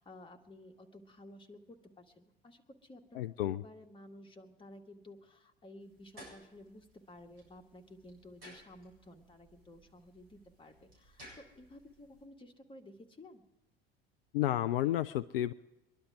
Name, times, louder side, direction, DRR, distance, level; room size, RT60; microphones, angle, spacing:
voice 1, 0.0-13.4, left 1 dB, 15° left, 3 dB, 1.9 m, -54 dB
voice 2, 3.1-3.6 14.3-15.5, left 13 dB, 65° left, 12 dB, 0.5 m, -31 dB
sound 1, 5.8-12.2, equal, 70° right, 8.0 m, -58 dB
23.0 x 11.5 x 4.9 m, 1.0 s
figure-of-eight pair, 65°, 31 cm